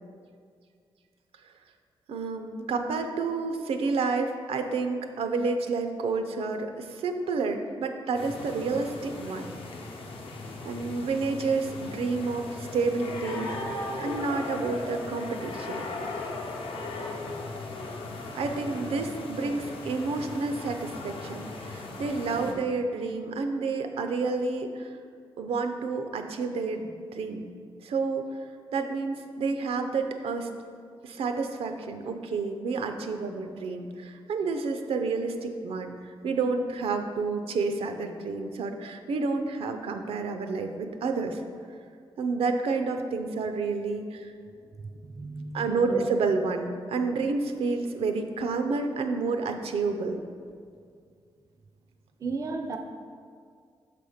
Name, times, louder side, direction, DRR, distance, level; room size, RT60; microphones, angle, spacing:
voice 1, 2.1-9.5 10.6-13.6 14.0-15.8 18.3-24.9 25.4-27.5 27.8-28.4 28.7-30.5 31.0-36.0 36.2-41.4 42.2-44.3 45.5-50.2, right 4 dB, 85° right, 6 dB, 0.5 m, -29 dB
sound 1, 8.1-22.5, left 2 dB, 70° left, 0.7 m, -37 dB
voice 2, 44.9-46.1 52.2-52.8, right 3 dB, 35° right, 5 dB, 0.4 m, -34 dB
6.2 x 4.2 x 4.9 m, 2.2 s
wide cardioid pair, 165°, 10 cm